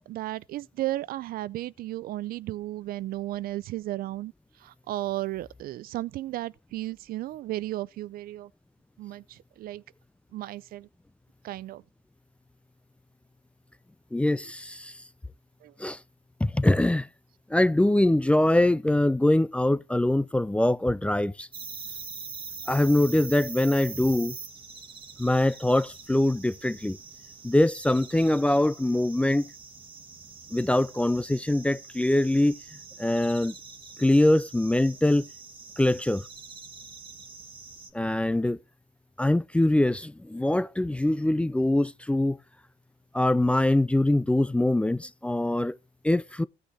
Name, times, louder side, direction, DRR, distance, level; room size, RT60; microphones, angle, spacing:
voice 1, 0.0-4.3 4.6-8.5 9.0-9.8 10.3-10.9 11.4-11.8 15.6-15.7, right 15 dB, 60° right, 0.4 m, -34 dB
voice 2, 14.1-14.9 15.8-16.0 16.4-17.1 17.5-21.5 22.7-24.3 25.2-27.0 27.4-29.5 30.5-32.6 33.0-33.5 34.0-35.3 35.8-36.2 37.9-38.6 39.2-42.4 43.1-45.8 46.0-46.4, left 1 dB, 5° left, 0.4 m, -23 dB
sound 1, 21.5-37.9, right 5 dB, 30° right, 1.5 m, -44 dB
15.5 x 6.4 x 2.9 m
cardioid pair, 110°, 17 cm